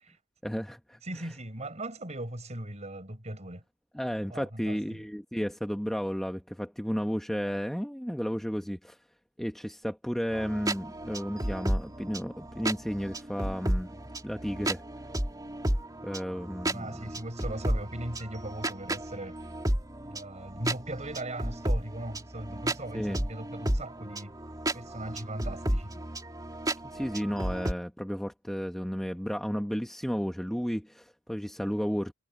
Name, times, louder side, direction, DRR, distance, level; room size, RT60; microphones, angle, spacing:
voice 1, 0.4-1.0 3.9-9.0 9.4-13.9 14.2-14.8 16.0-17.0 22.9-23.2 26.9-32.1, equal, ahead, 1.0 m, -33 dB
voice 2, 1.0-3.6 4.3-5.0 16.7-19.5 20.1-24.4 24.7-26.0, right 1 dB, 35° right, 5.3 m, -39 dB
sound 1, 10.3-27.7, right 1 dB, 20° right, 2.9 m, -33 dB
head